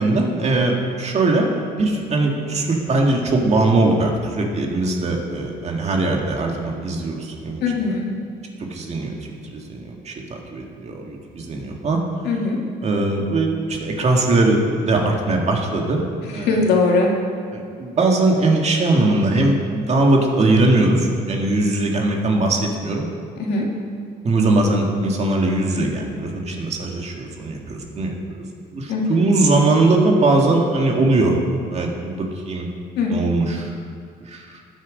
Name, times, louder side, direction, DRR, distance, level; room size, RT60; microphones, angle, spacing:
voice 1, 0.0-7.6 8.6-9.1 9.5-10.1 10.5-12.0 12.8-16.0 16.3-16.6 17.5-23.0 24.2-28.1 28.7-31.4 31.7-32.7 33.1-33.7 34.3-34.4, right 2 dB, 40° right, 1 dB, 1.9 m, -20 dB
voice 2, 7.6-8.1 12.2-12.6 16.5-17.1 23.4-23.6 28.9-29.2 33.0-33.2, left 3 dB, 75° left, -1 dB, 2.4 m, -20 dB
15.0 x 8.8 x 5.1 m, 2.3 s
cardioid pair, 110°, 17 cm